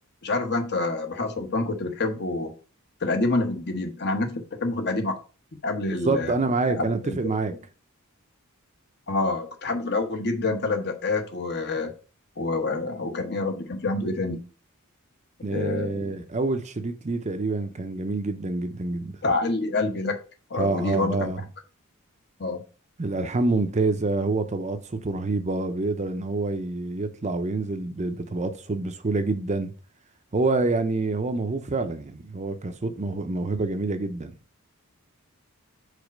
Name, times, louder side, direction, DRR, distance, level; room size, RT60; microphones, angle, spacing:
voice 1, 0.2-2.5 3.0-5.2 5.6-6.3 6.7-7.3 9.1-11.9 12.4-14.4 15.5-16.2 19.2-20.2 20.5-21.3 22.4-22.6, left 3 dB, 50° left, 1.0 m, -27 dB
voice 2, 6.0-7.6 15.4-19.2 20.6-21.4 23.0-29.7 30.3-34.3, right 3 dB, 30° right, 0.6 m, -27 dB
5.0 x 4.1 x 5.3 m
head